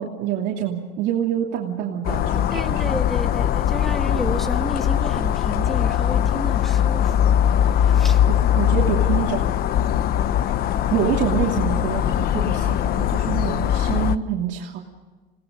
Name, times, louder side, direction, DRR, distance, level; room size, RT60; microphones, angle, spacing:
voice 1, 0.0-2.8 8.3-9.5 10.9-14.8, right 9 dB, 75° right, -2 dB, 2.8 m, -26 dB
sound 1, 2.0-14.2, left 10 dB, 55° left, 0.8 m, -21 dB
voice 2, 2.5-7.1 7.7-8.2, equal, ahead, 5 dB, 2.2 m, -31 dB
29.0 x 19.0 x 5.3 m, 1.3 s
cardioid pair, 150°, 18 cm